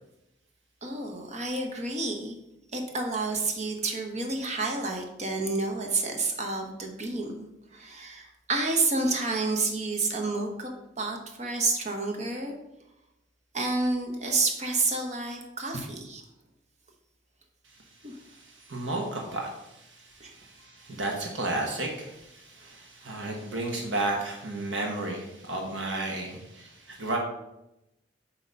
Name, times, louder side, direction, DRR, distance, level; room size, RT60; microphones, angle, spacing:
voice 1, 0.8-2.4 2.7-7.5 7.7-10.7 11.0-12.5 13.5-16.2 18.0-18.1 20.2-20.3 23.0-23.3, right 3 dB, 40° right, 3 dB, 1.0 m, -29 dB
voice 2, 17.6-27.2, right 2 dB, 85° right, 0 dB, 1.2 m, -33 dB
8.1 x 3.0 x 5.3 m, 0.90 s
head